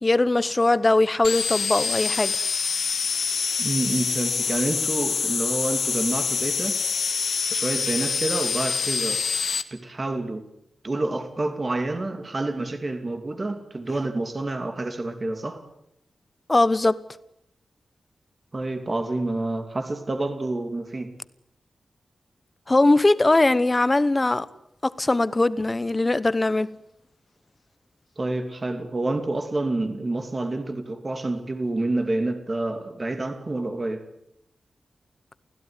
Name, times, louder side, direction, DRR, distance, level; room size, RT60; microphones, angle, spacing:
voice 1, 0.0-2.4 16.5-17.0 22.7-24.5 24.8-26.7, left 2 dB, 20° left, 1.0 m, -20 dB
sound 1, 1.2-9.6, left 6 dB, 65° left, 1.7 m, -26 dB
voice 2, 3.6-6.8 7.5-9.2 9.7-10.4 10.8-15.6 18.5-21.1 28.2-34.0, right 2 dB, 30° right, 2.7 m, -28 dB
29.0 x 16.5 x 9.7 m
wide cardioid pair, 150°, 0 cm